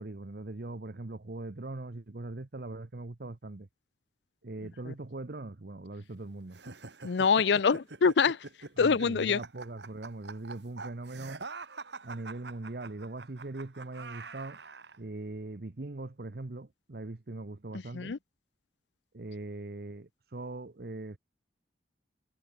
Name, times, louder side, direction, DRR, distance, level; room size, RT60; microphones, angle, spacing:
voice 1, 0.0-3.7 4.4-6.6 8.8-11.4 12.0-14.6 15.0-18.2 19.1-21.2, right 2 dB, 60° right, 0.9 m, -41 dB
sound 1, 6.5-15.0, right 4 dB, 80° right, 2.1 m, -45 dB
voice 2, 7.0-8.4 8.8-9.4 17.9-18.2, left 5 dB, 80° left, 0.5 m, -25 dB
head